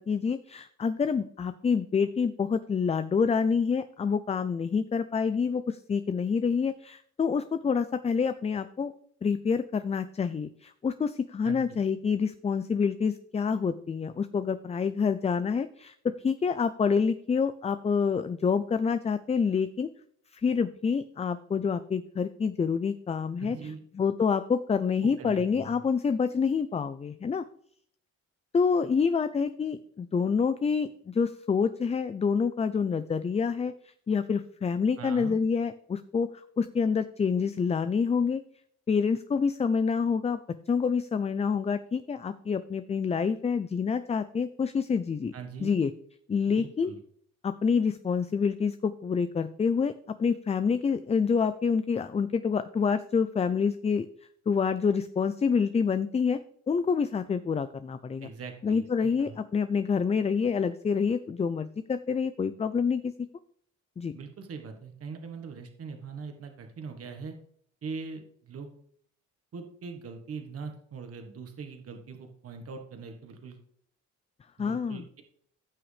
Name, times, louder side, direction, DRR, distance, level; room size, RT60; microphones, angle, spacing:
voice 1, 0.0-8.9 9.2-19.9 20.3-23.6 24.0-27.4 28.5-36.3 36.6-38.4 38.9-40.4 40.7-45.3 45.6-45.9 46.3-46.9 47.4-49.9 50.2-54.1 54.5-56.4 56.7-58.3 58.6-63.1 64.0-64.1 74.6-75.0, left 5 dB, 20° left, 12 dB, 0.4 m, -27 dB
voice 2, 11.4-11.8 23.4-23.8 25.2-25.8 35.0-35.4 45.3-45.7 46.5-47.0 58.2-59.4 64.1-67.3 67.8-68.7 69.5-73.6 74.6-75.2, right 5 dB, 50° right, 5 dB, 1.4 m, -41 dB
15.0 x 6.0 x 3.3 m, 0.63 s
cardioid pair, 90°, 30 cm